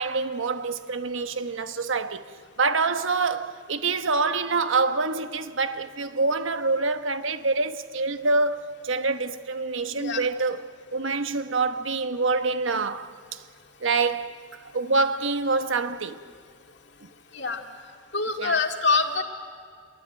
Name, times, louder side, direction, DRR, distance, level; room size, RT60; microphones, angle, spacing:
voice 1, 0.0-2.3 2.6-13.4 13.8-16.2 17.0-17.1 18.4-18.6, right 3 dB, 75° right, 1.2 m, -26 dB
voice 2, 9.9-10.2 17.3-17.6 18.1-19.2, left 4 dB, 60° left, 2.2 m, -25 dB
27.0 x 22.5 x 9.2 m
head